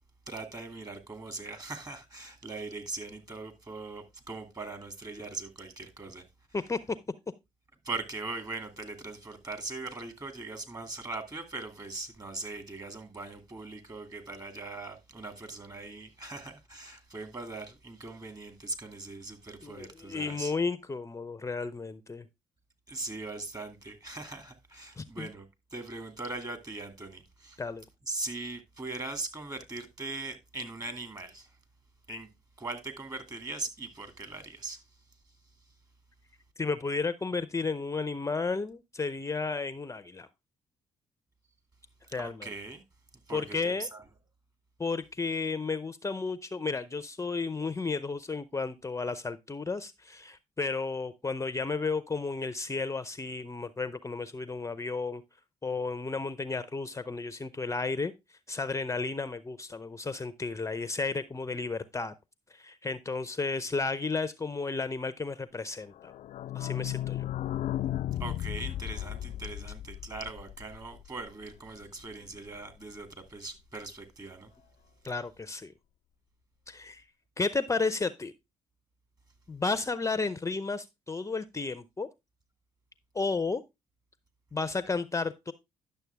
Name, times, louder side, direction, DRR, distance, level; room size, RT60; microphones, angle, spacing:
voice 1, 0.3-6.2 7.8-20.5 22.9-27.6 28.1-31.5 32.1-32.3 32.6-34.8 42.2-42.8 43.3-44.0 68.2-74.5, right 3 dB, 25° right, 2.4 m, -40 dB
voice 2, 6.5-7.0 19.6-22.2 25.0-25.3 27.6-27.8 36.6-40.3 42.1-42.5 43.3-43.9 44.8-55.2 55.6-58.1 58.5-62.1 62.5-66.1 66.5-67.2 75.0-75.7 76.7-77.0 77.4-78.3 79.5-82.1 83.1-83.6 84.5-85.5, left 4 dB, 20° left, 0.6 m, -33 dB
sound 1, 66.0-71.5 71.8-71.9 72.1-72.2 72.5-72.6, left 12 dB, 60° left, 0.4 m, -35 dB
10.5 x 6.6 x 3.4 m
supercardioid pair, 60°, 14 cm